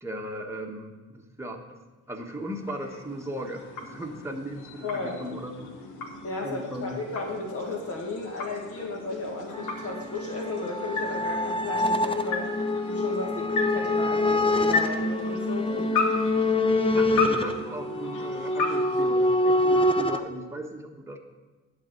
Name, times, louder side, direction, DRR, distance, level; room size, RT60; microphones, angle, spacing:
voice 1, 0.0-1.6 2.1-5.7 6.4-7.0 16.7-21.2, right 1 dB, 10° right, 1 dB, 1.3 m, -37 dB
sound 1, 2.1-19.9, left 3 dB, 85° left, 1.3 m, -35 dB
voice 2, 4.8-5.2 6.2-12.5 12.9-15.9 17.0-17.1, left 2 dB, 50° left, -1 dB, 1.9 m, -34 dB
sound 2, 9.5-20.2, left 2 dB, 20° left, 0.7 m, -25 dB
11.0 x 4.3 x 7.8 m, 1.2 s
cardioid pair, 90°, 30 cm